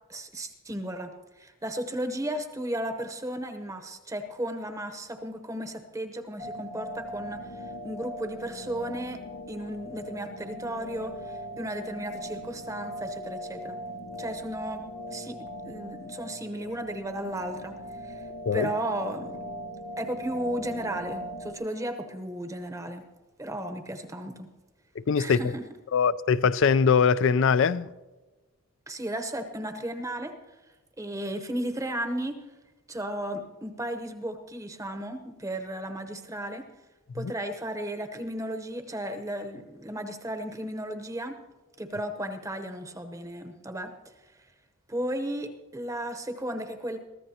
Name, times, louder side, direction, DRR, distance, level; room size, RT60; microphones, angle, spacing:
voice 1, 0.1-1.1 1.4-7.4 7.8-9.2 9.5-13.8 14.2-14.8 15.1-15.4 15.6-18.2 18.5-19.3 20.0-23.0 23.4-24.5 25.2-25.6 28.9-30.3 31.0-32.4 32.9-36.7 37.1-41.4 41.8-43.9 44.9-47.0, right 1 dB, 15° right, 0.8 m, -34 dB
sound 1, 6.4-21.5, equal, 80° left, 1.2 m, -40 dB
voice 2, 25.1-25.5 25.9-27.9 37.2-37.3, left 6 dB, 60° left, 0.4 m, -22 dB
22.5 x 14.5 x 2.8 m
head